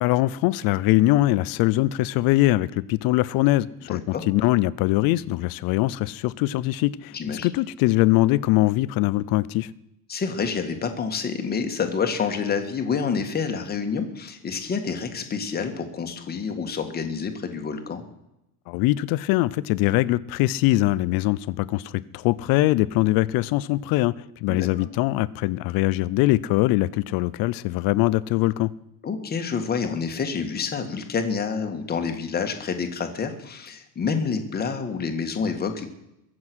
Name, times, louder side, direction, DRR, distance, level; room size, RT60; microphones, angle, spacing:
voice 1, 0.0-9.7 18.7-24.1 24.4-28.7, left 17 dB, 50° left, 0.6 m, -22 dB
voice 2, 3.9-4.2 7.1-7.5 10.1-18.0 24.5-24.9 29.0-35.9, left 5 dB, 20° left, 1.7 m, -28 dB
22.5 x 7.8 x 6.2 m
cardioid pair, 160°, 44 cm